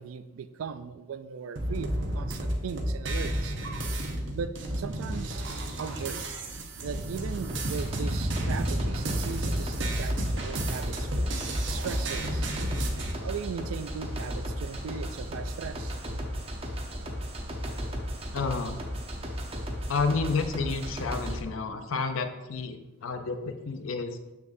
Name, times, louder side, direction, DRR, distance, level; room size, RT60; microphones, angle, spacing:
voice 1, 0.0-3.6 4.3-5.4 5.8-6.3 6.8-11.3 11.7-12.5 13.2-16.0, right 6 dB, 85° right, 12 dB, 0.4 m, -38 dB
sound 1, 1.6-13.1, right 1 dB, 60° right, 0.9 m, -31 dB
sound 2, 7.5-21.4, equal, 30° right, 0.9 m, -35 dB
voice 2, 18.3-18.7 19.9-24.2, left 4 dB, 80° left, 8 dB, 0.6 m, -30 dB
7.7 x 6.1 x 2.6 m, 1.1 s
head